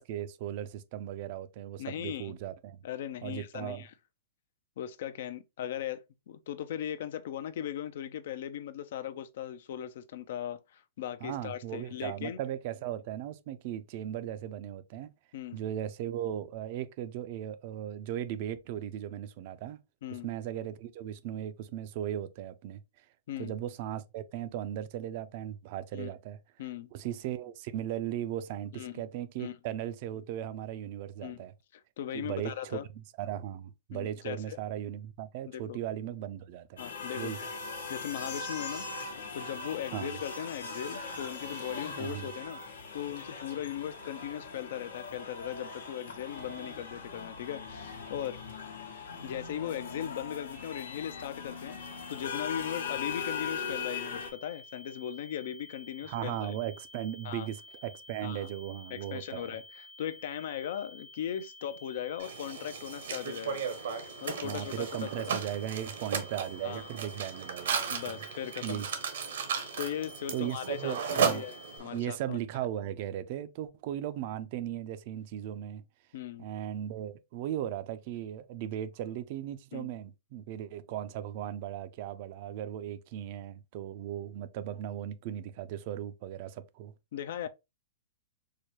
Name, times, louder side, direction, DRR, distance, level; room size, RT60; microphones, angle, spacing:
voice 1, 0.0-2.8 3.2-3.8 11.2-15.1 15.5-19.8 20.2-23.0 23.4-26.4 26.9-31.5 32.1-36.8 37.2-37.4 39.9-40.2 42.0-42.3 56.0-59.6 64.4-68.2 68.6-68.9 70.3-71.5 71.9-75.8 76.4-86.9, right 11 dB, 50° right, 0.4 m, -37 dB
voice 2, 1.8-2.3 2.8-3.9 4.8-12.4 15.3-15.6 20.0-20.3 23.3-23.5 25.9-26.1 26.6-26.9 28.7-29.0 29.4-29.5 31.2-31.4 32.0-32.9 33.9-34.6 35.5-35.8 36.8-37.3 37.9-38.8 39.3-42.6 42.9-48.4 49.2-51.8 52.1-56.5 57.2-57.5 58.2-58.5 58.9-63.7 64.2-65.4 66.6-66.9 67.9-68.8 69.8-72.4 76.1-76.5 79.7-79.9 87.1-87.5, left 10 dB, 65° left, 0.4 m, -38 dB
sound 1, 36.8-54.3, left 5 dB, 85° left, 1.0 m, -40 dB
sound 2, 51.8-71.8, left 2 dB, 30° left, 0.7 m, -52 dB
Mechanisms, 62.2-72.0, right 6 dB, 75° right, 0.9 m, -35 dB
4.7 x 2.2 x 2.9 m
hypercardioid pair, 140°, 0 cm